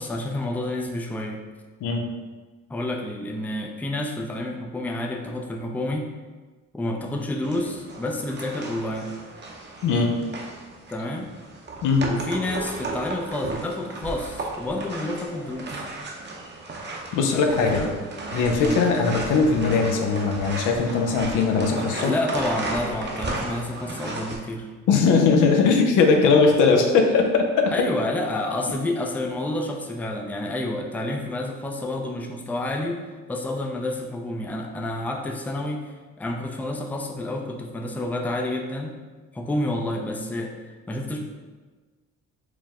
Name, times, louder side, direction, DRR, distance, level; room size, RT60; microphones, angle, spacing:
voice 1, 0.0-1.4 2.7-6.1 6.7-9.1 10.9-11.3 12.0-15.9 17.2-17.9 18.6-18.8 22.0-24.7 27.7-33.0 33.3-38.9 39.3-41.2, left 1 dB, 5° left, 1 dB, 0.3 m, -29 dB
voice 2, 1.8-2.1 9.8-10.2 11.8-12.1 17.1-17.8 18.3-22.1 24.9-27.7, left 4 dB, 90° left, 3 dB, 0.6 m, -20 dB
sound 1, 7.4-24.4, right 2 dB, 35° right, 0.7 m, -35 dB
4.6 x 2.0 x 3.5 m, 1.4 s
cardioid pair, 90°, 30 cm